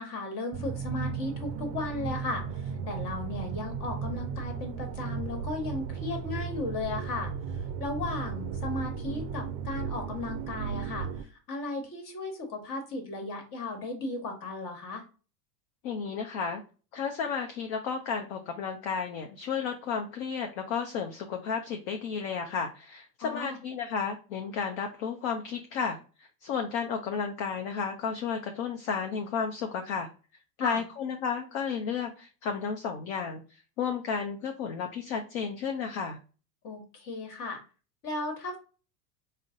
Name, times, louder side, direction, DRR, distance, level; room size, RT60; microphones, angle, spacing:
voice 1, 0.0-2.4 2.9-7.3 7.8-11.1 11.5-15.0 23.2-23.6 30.6-30.8 36.6-37.6 38.0-38.6, left 3 dB, 40° left, 4 dB, 1.4 m, -35 dB
sound 1, 0.5-11.2, right 6 dB, 45° right, 0.4 m, -35 dB
voice 2, 15.8-16.6 16.9-26.0 26.4-30.1 30.6-33.4 33.8-36.2, left 6 dB, 55° left, 4 dB, 0.7 m, -32 dB
3.8 x 2.1 x 3.6 m, 0.35 s
hypercardioid pair, 95°, 49 cm